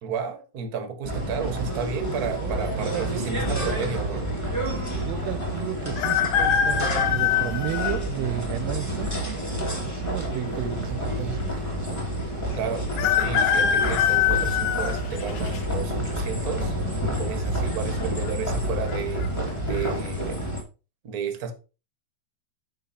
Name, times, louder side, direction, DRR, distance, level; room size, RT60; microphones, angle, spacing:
voice 1, 0.0-4.3 12.5-16.8 17.1-19.3 19.6-20.4 21.0-21.5, right 6 dB, 60° right, 0.9 m, -32 dB
sound 1, 1.0-20.6, equal, 5° left, 1.6 m, -29 dB
voice 2, 2.9-3.3 5.0-9.1 9.8-12.1 17.5-17.6, right 14 dB, 80° right, 1.6 m, -33 dB
sound 2, 6.0-8.0 8.7-8.8 9.9-10.5 10.8-10.9 11.1-11.2 13.0-15.6 16.1-16.5 17.6-18.0 18.3-18.4 18.9-19.3 19.7-19.9, left 9 dB, 75° left, 2.0 m, -23 dB
11.0 x 3.7 x 4.2 m
omnidirectional pair, 3.4 m